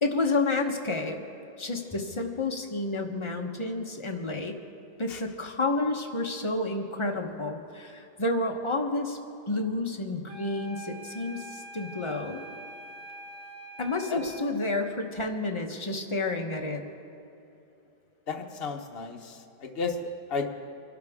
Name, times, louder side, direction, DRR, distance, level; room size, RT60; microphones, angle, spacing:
voice 1, 0.0-1.2 1.6-4.6 5.0-9.2 9.5-12.4 13.8-16.8, left 2 dB, 25° left, 3 dB, 0.8 m, -30 dB
sound 1, 10.3-14.5, equal, 90° right, 3.0 m, -44 dB
voice 2, 18.3-20.5, left 4 dB, 40° left, 3 dB, 1.1 m, -33 dB
24.5 x 12.0 x 3.6 m, 2.9 s
omnidirectional pair, 1.8 m